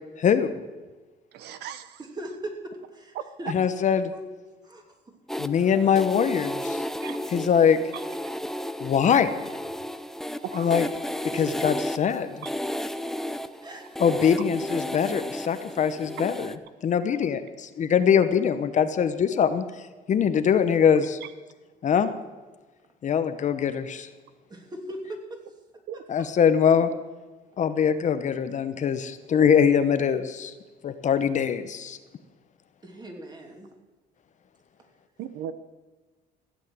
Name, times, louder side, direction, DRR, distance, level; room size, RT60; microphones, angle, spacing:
voice 1, 0.2-0.5 3.5-4.1 5.4-6.8 7.3-7.8 8.8-9.3 10.5-10.9 11.2-12.5 14.0-16.5 16.8-21.2 21.8-22.1 23.0-24.1 26.1-26.9 27.6-30.5 30.8-32.0, left 7 dB, 45° left, 10 dB, 1.0 m, -23 dB
voice 2, 1.3-2.0 3.1-3.5 7.0-7.2 10.4-10.7 12.4-12.5 21.2-21.3 25.9-26.0 35.2-35.5, right 10 dB, 80° right, 12 dB, 0.9 m, -36 dB
voice 3, 2.9-3.5 4.1-4.2 4.6-4.8 7.1-7.4 11.3-11.4 13.6-13.9 24.5-25.4 32.8-33.7, right 1 dB, 25° right, 2 dB, 2.9 m, -39 dB
sound 1, 5.3-16.6, left 1 dB, ahead, 0.6 m, -33 dB
15.5 x 8.4 x 8.0 m, 1.3 s
cardioid pair, 110°, 17 cm